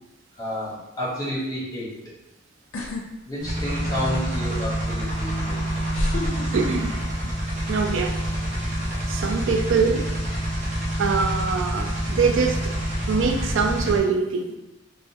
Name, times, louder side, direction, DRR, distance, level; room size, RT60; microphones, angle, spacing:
voice 1, 0.4-1.9 3.3-5.6, equal, 20° left, -6 dB, 0.9 m, -30 dB
sound 1, 2.7-3.0 3.4-4.0 5.1-5.2 5.9-7.3 7.6-8.0, left 1 dB, 85° left, 0.5 m, -28 dB
sound 2, 3.4-14.0, right 1 dB, 40° right, 0.7 m, -27 dB
voice 2, 6.5-7.0 7.7-8.2 9.1-10.1 11.0-12.7 13.1-14.6, right 5 dB, 75° right, 5 dB, 0.3 m, -23 dB
3.5 x 2.1 x 2.6 m, 0.98 s
head